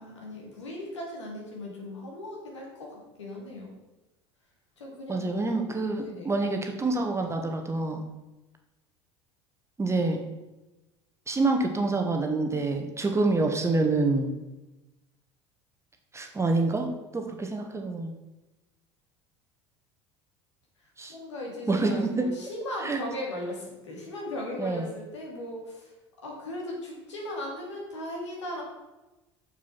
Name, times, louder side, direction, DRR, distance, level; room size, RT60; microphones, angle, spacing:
voice 1, 0.0-3.7 4.8-6.3 21.1-25.9 26.2-28.6, left 1 dB, 85° left, -1 dB, 2.4 m, -38 dB
voice 2, 5.1-8.0 9.8-10.2 11.3-14.3 16.1-18.1 21.0-21.1 21.7-22.3 22.8-23.0 24.6-24.8, right 3 dB, 20° right, 4 dB, 1.3 m, -27 dB
6.7 x 6.4 x 5.7 m, 1.0 s
hypercardioid pair, 75°, 15 cm